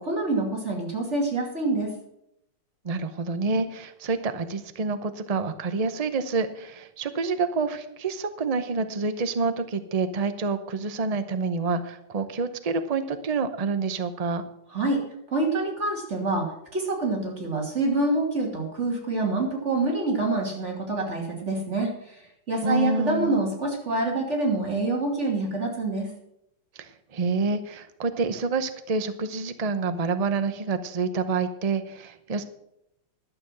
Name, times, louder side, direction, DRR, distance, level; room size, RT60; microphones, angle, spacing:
voice 1, 0.0-1.9 14.7-15.0 15.3-22.2 22.5-26.1, right 2 dB, 40° right, 1 dB, 2.9 m, -26 dB
voice 2, 2.8-14.4 22.6-23.4 26.7-32.4, right 4 dB, 90° right, 10 dB, 0.3 m, -28 dB
12.0 x 6.9 x 7.6 m, 0.78 s
omnidirectional pair, 2.0 m